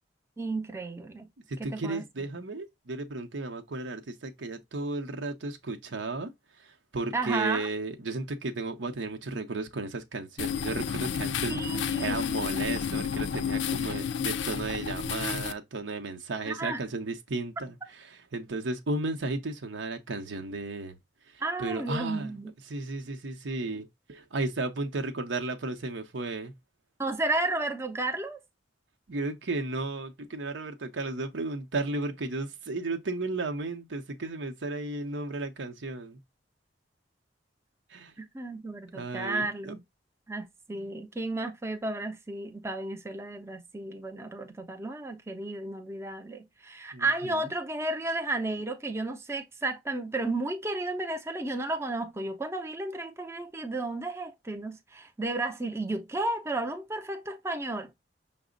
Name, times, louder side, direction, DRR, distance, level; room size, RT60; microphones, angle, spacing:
voice 1, 0.4-1.3 1.6-2.0 7.1-7.7 11.5-12.2 16.5-16.8 21.4-22.5 27.0-28.4 38.2-39.8 40.3-57.9, right 2 dB, 15° right, 0.5 m, -33 dB
voice 2, 1.5-6.3 6.6-21.0 21.6-22.3 22.7-26.5 29.1-36.2 37.9-38.1 38.9-39.7 46.9-47.4, right 3 dB, 90° right, 0.8 m, -34 dB
sound 1, 10.4-15.5, left 7 dB, 85° left, 0.4 m, -31 dB
5.9 x 2.1 x 3.8 m
head